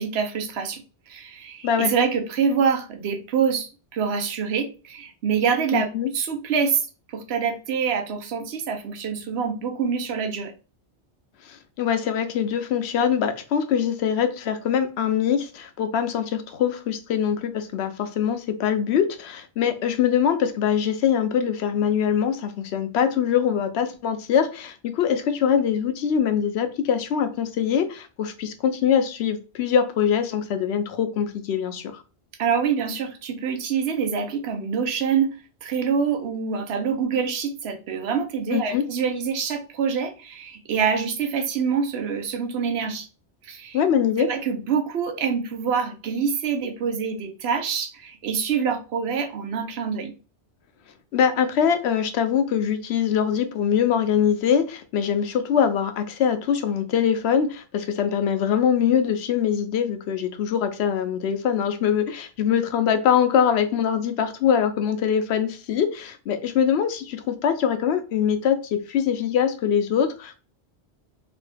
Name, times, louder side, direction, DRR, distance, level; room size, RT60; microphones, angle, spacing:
voice 1, 0.0-6.8 7.1-10.5 32.4-43.1 43.4-43.8 44.2-50.1, right 6 dB, 75° right, 0.9 m, -26 dB
voice 2, 5.7-6.1 11.4-32.0 38.5-38.8 43.7-44.3 51.1-70.4, left 8 dB, 75° left, 0.8 m, -23 dB
3.0 x 2.7 x 3.3 m
omnidirectional pair, 1.1 m